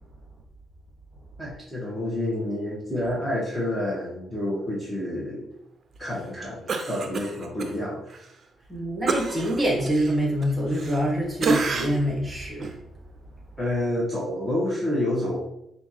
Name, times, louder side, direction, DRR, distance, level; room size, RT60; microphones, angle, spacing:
voice 1, 1.4-5.5 6.0-8.1 13.6-15.4, left 1 dB, 5° left, -6 dB, 1.3 m, -28 dB
Cough, 6.7-7.7 8.1-8.3 9.1-11.1 11.4-12.1 12.6-12.8, right 4 dB, 45° right, 0.6 m, -29 dB
voice 2, 8.7-12.7, equal, 15° right, -3 dB, 1.5 m, -25 dB
5.5 x 2.6 x 3.0 m, 0.80 s
cardioid pair, 90°, 0 cm